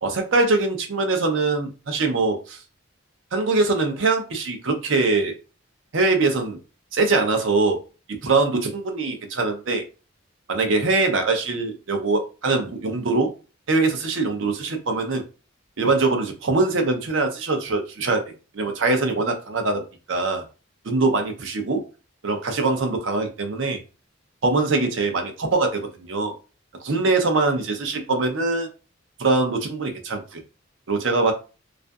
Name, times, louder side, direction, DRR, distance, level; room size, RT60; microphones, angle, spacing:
voice 1, 0.0-2.6 3.3-5.3 5.9-6.6 6.9-7.8 8.2-9.8 10.5-13.3 13.7-15.2 15.8-19.8 20.1-20.4 20.8-21.8 22.2-23.8 24.4-26.3 26.8-28.7 29.2-30.4 30.9-31.3, right 3 dB, 65° right, 5 dB, 0.6 m, -22 dB
2.5 x 2.5 x 2.3 m, 0.33 s
head